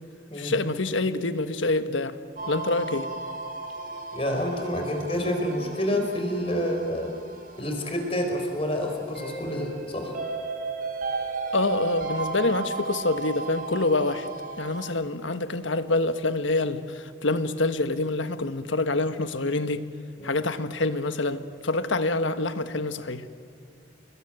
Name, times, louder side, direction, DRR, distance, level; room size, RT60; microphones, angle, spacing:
voice 1, 0.4-2.2 2.5-3.1 11.5-14.3 14.6-19.8 20.2-23.2, left 2 dB, 80° left, 10 dB, 1.5 m, -26 dB
sound 1, 2.4-14.9, right 4 dB, 45° right, 4.2 m, -35 dB
voice 2, 4.1-7.1 7.6-10.1 20.2-20.3, equal, 30° left, 4 dB, 4.6 m, -28 dB
29.0 x 21.0 x 9.1 m, 2.4 s
head